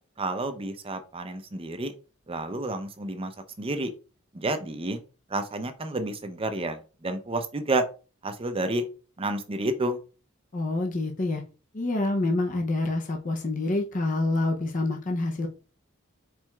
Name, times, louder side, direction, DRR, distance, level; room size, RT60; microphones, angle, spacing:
voice 1, 0.2-1.9 2.3-3.3 3.6-3.9 4.3-5.0 5.3-7.9 8.2-8.8 9.2-10.0, right 2 dB, 25° right, 8 dB, 0.5 m, -30 dB
voice 2, 10.5-11.4 11.7-15.5, left 2 dB, 35° left, 1 dB, 0.6 m, -27 dB
4.6 x 4.2 x 2.3 m, 0.34 s
head